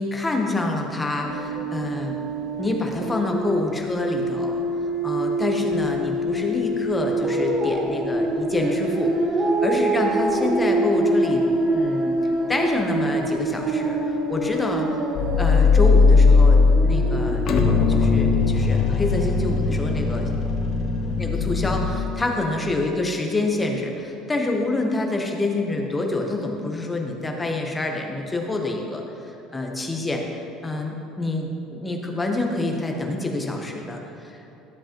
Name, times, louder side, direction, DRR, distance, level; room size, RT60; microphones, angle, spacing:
voice 1, 0.0-2.2 2.6-4.6 5.0-9.1 9.4-11.4 11.7-12.1 12.5-15.0 15.4-17.4 17.9-20.3 21.1-29.0 29.5-30.2 30.6-34.3, left 2 dB, 10° left, 1 dB, 0.9 m, -27 dB
sound 1, 1.2-18.3, right 1 dB, 25° right, 1.2 m, -25 dB
sound 2, 15.2-21.9, left 4 dB, 40° left, 0.8 m, -19 dB
12.5 x 7.6 x 2.9 m, 2.8 s
cardioid pair, 155°, 0 cm